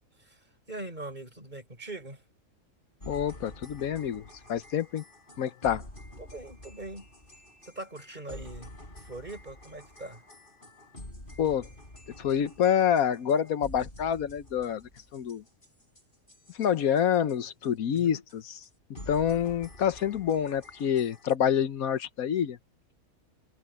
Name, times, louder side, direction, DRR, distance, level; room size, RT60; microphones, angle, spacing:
voice 1, 0.2-2.2 6.2-7.1 7.6-10.2 17.9-18.2, right 2 dB, 30° right, 6.1 m, -42 dB
sound 1, 3.0-17.7 18.0-18.1 18.3-18.4 18.6-18.7 18.9-21.4, left 1 dB, 35° left, 7.3 m, -48 dB
voice 2, 3.1-5.0 5.4-5.8 11.4-11.7 12.2-15.4 16.5-18.6 19.1-22.6, left 9 dB, 80° left, 1.3 m, -27 dB
omnidirectional pair, 1.5 m